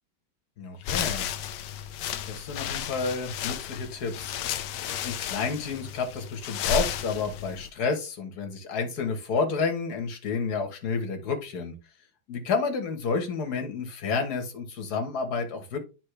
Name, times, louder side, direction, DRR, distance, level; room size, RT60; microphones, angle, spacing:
voice 1, 0.6-1.3 2.3-4.3 5.0-11.7 12.3-15.8, left 4 dB, 55° left, 5 dB, 1.9 m, -30 dB
sound 1, 0.8-7.7, left 8 dB, 70° left, 1.1 m, -33 dB
9.8 x 4.3 x 3.3 m, 0.30 s
omnidirectional pair, 2.1 m